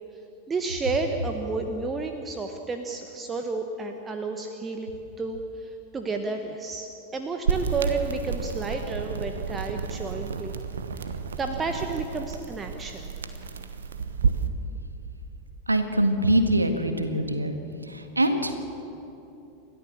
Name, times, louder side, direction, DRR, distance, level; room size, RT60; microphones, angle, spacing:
voice 1, 0.5-10.5 10.9-11.0 11.4-13.1, right 3 dB, 20° right, 4 dB, 1.4 m, -31 dB
sound 1, 7.5-14.5, right 6 dB, 70° right, 1.2 m, -31 dB
voice 2, 15.7-17.5 17.9-18.6, right 1 dB, 85° right, 7 dB, 1.7 m, -23 dB
30.0 x 13.5 x 7.5 m, 2.9 s
figure-of-eight pair, 90°, 0 cm